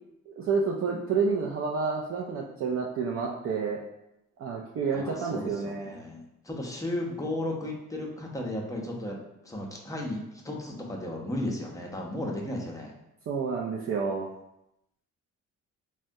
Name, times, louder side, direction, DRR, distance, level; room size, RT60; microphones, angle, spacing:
voice 1, 0.3-3.8 4.4-6.0 13.3-14.3, right 5 dB, 50° right, -2 dB, 0.4 m, -29 dB
voice 2, 4.9-9.2 9.4-12.9, left 1 dB, 10° left, -1 dB, 0.5 m, -34 dB
3.4 x 2.2 x 2.6 m, 0.84 s
cardioid pair, 90°, 30 cm